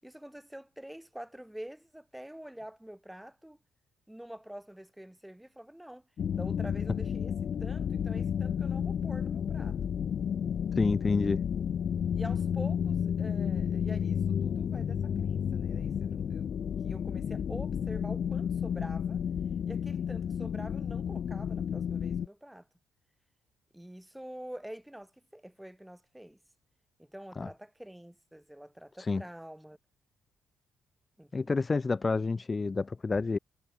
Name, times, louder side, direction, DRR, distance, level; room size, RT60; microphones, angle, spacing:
voice 1, 0.0-3.6 4.1-6.0 6.3-7.3 7.6-9.8 12.2-16.5 16.8-19.2 19.7-22.7 23.7-26.4 27.0-29.8 31.2-31.7, right 1 dB, 5° right, 6.9 m, -46 dB
sound 1, 6.2-22.3, left 8 dB, 40° left, 0.5 m, -32 dB
voice 2, 10.7-11.4 27.4-27.5 29.0-29.2 31.3-33.4, left 4 dB, 20° left, 1.1 m, -29 dB
cardioid pair, 170°, 0 cm